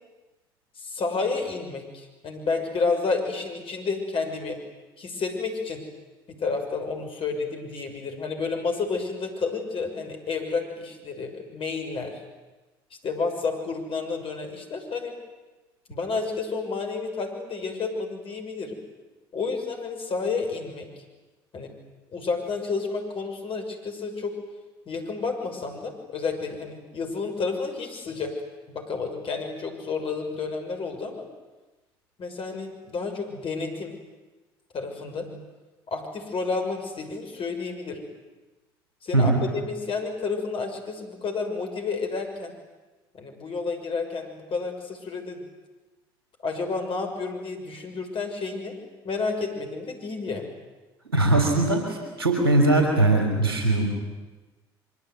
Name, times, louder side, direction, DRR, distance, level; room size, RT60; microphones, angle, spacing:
voice 1, 0.8-4.6 5.0-5.8 6.3-12.2 13.0-15.2 15.9-18.8 19.3-20.9 21.5-21.7 22.1-24.3 24.9-28.4 28.7-31.3 32.2-33.9 34.7-35.4 35.9-38.0 39.0-42.6 43.1-45.4 46.4-48.7 49.0-50.5, left 4 dB, 45° left, 4 dB, 6.4 m, -30 dB
voice 2, 51.1-53.9, right 2 dB, 90° right, 3 dB, 3.6 m, -21 dB
25.0 x 24.0 x 9.5 m, 1.2 s
figure-of-eight pair, 55°, 12 cm